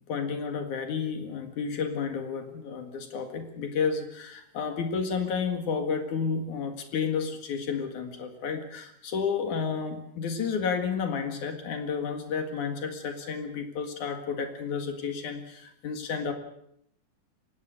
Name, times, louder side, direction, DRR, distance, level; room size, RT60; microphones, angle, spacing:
voice 1, 0.1-16.3, left 6 dB, 55° left, 6 dB, 2.5 m, -31 dB
24.5 x 19.0 x 6.5 m, 0.72 s
omnidirectional pair, 5.7 m